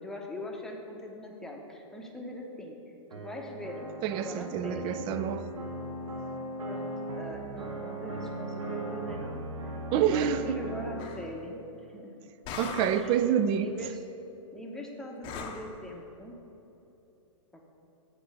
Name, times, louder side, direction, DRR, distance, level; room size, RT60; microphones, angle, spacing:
voice 1, 0.0-2.8 3.1-3.9 4.1-5.0 6.7-9.5 10.1-11.6 11.9-12.1 12.9-13.2 13.6-14.0 14.5-16.4 17.5-17.7, left 1 dB, 5° left, 0.9 m, -42 dB
sound 1, 3.1-11.1, right 1 dB, 85° right, 1.1 m, -38 dB
voice 2, 4.0-5.5 9.9-10.6 12.6-13.7, right 9 dB, 30° right, 0.3 m, -27 dB
sound 2, 11.0-11.3 12.4-13.2 15.2-15.8, left 5 dB, 30° left, 0.7 m, -39 dB
7.9 x 4.5 x 6.5 m
hypercardioid pair, 130°, 17 cm